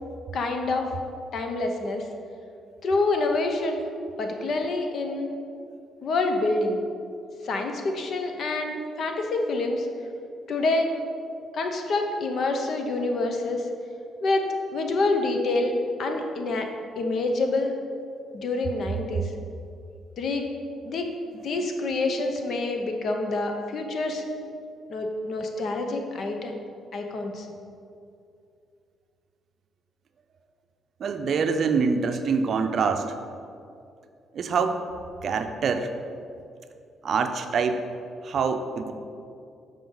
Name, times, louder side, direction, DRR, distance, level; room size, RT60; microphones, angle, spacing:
voice 1, 0.3-0.9 1.3-2.1 2.8-3.8 4.2-5.3 6.0-6.8 7.4-9.9 10.5-10.9 11.5-13.7 14.2-15.7 16.0-16.7 17.0-17.7 18.3-19.3 20.2-20.4 20.8-21.2 21.4-24.2 24.9-26.5 26.9-27.5, left 2 dB, 60° left, 4 dB, 0.8 m, -27 dB
voice 2, 31.0-33.1 34.3-34.8 35.2-35.9 37.0-37.8 38.2-38.9, right 5 dB, 60° right, 7 dB, 0.5 m, -25 dB
6.8 x 5.1 x 3.9 m, 2.5 s
cardioid pair, 90°, 0 cm